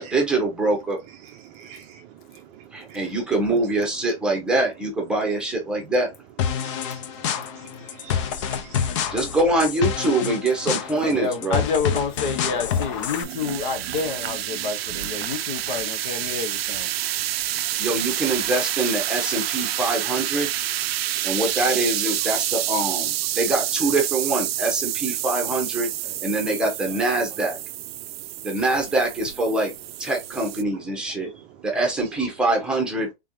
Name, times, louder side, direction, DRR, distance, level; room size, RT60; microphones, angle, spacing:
voice 1, 0.0-1.0 2.7-6.1 9.1-11.6 17.8-20.5 21.2-25.9 26.2-27.6 28.4-29.7 30.0-31.3 31.6-33.1, right 2 dB, 5° right, 1.0 m, -24 dB
voice 2, 1.1-2.0 2.9-3.1 8.0-9.1 23.4-23.6 25.1-25.2 28.7-29.0 32.0-32.2, right 9 dB, 25° right, 0.6 m, -45 dB
sound 1, 6.4-13.2, left 8 dB, 30° left, 0.4 m, -27 dB
voice 3, 11.0-16.9 26.0-27.4, left 5 dB, 55° left, 1.0 m, -29 dB
sound 2, 12.4-30.6, right 13 dB, 80° right, 0.5 m, -28 dB
3.7 x 3.3 x 2.6 m
hypercardioid pair, 155°, 30 cm